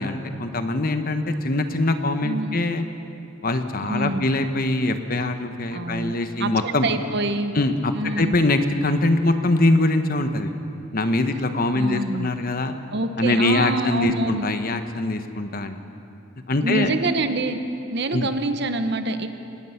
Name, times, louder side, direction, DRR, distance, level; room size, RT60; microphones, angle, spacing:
voice 1, 0.0-2.8 3.4-6.9 7.5-10.5 10.9-12.7 13.2-15.8 16.5-16.9 18.1-18.3, left 2 dB, 45° left, 8 dB, 1.1 m, -23 dB
voice 2, 2.2-2.6 3.9-4.3 5.7-7.5 7.9-8.4 11.7-12.3 12.9-14.5 16.6-17.6 17.9-19.3, right 2 dB, 55° right, 8 dB, 1.1 m, -26 dB
25.0 x 19.5 x 5.8 m, 2.7 s
head